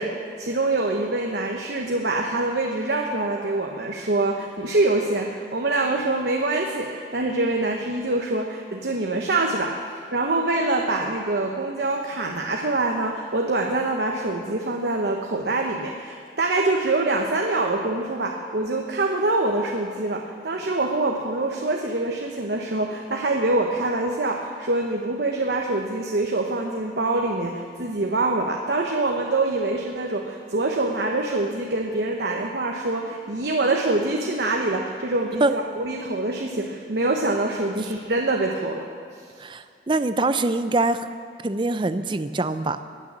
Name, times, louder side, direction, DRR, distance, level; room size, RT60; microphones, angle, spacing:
voice 1, 0.0-9.8 10.1-39.3, right 2 dB, 65° right, 1 dB, 1.0 m, -25 dB
voice 2, 39.4-41.1 41.4-42.8, right 2 dB, 25° right, 11 dB, 0.5 m, -23 dB
19.5 x 6.8 x 7.4 m, 2.3 s
head